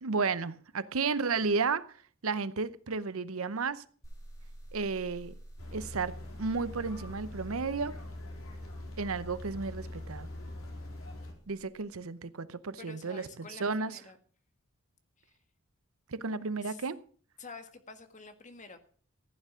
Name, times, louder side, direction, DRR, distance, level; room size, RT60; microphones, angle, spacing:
voice 1, 0.0-1.8 2.2-3.8 4.7-5.3 5.7-6.1 6.4-8.0 9.0-10.3 11.5-14.0 16.1-17.0, right 4 dB, 80° right, 0.8 m, -33 dB
sound 1, 4.0-11.8, right 1 dB, 15° left, 3.9 m, -51 dB
sound 2, 5.6-11.3, left 1 dB, 75° left, 4.0 m, -43 dB
voice 2, 12.8-14.2 15.2-15.4 16.6-16.8 17.4-18.8, left 4 dB, 35° left, 1.6 m, -48 dB
15.0 x 9.2 x 6.3 m
head